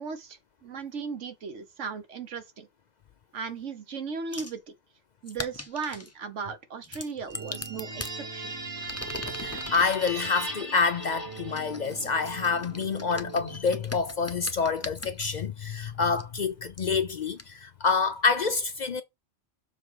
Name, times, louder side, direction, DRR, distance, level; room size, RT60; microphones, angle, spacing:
voice 1, 0.0-2.7 3.3-4.7 5.2-8.5, right 5 dB, 90° right, 1.4 m, -37 dB
sound 1, 4.3-4.6 5.3-6.1 6.8-8.2 8.7-10.2 11.0-15.4 16.2-16.3 16.8-16.9 17.4-17.5, left 2 dB, 15° left, 0.7 m, -41 dB
sound 2, 7.3-13.6, right 3 dB, 25° right, 0.8 m, -44 dB
sound 3, 7.3-12.0, right 2 dB, 50° right, 2.3 m, -38 dB
voice 2, 9.3-19.0, left 5 dB, 55° left, 0.5 m, -27 dB
7.1 x 4.1 x 4.8 m
omnidirectional pair, 1.2 m